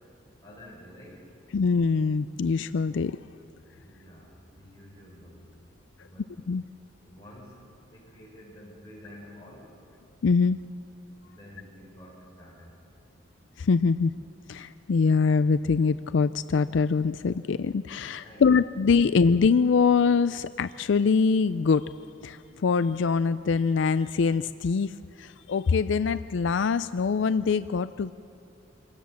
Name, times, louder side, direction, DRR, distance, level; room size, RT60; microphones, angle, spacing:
voice 1, 0.4-1.3 3.8-5.5 6.0-6.3 7.0-7.6 7.9-9.7 11.2-12.7 18.2-18.5, equal, 20° left, -5 dB, 7.0 m, -49 dB
voice 2, 1.5-3.2 6.5-6.6 10.2-10.6 13.6-14.1 14.5-21.9 22.2-24.9 25.2-28.1, left 5 dB, 75° left, 14 dB, 0.4 m, -23 dB
25.5 x 17.5 x 7.2 m, 2.6 s
head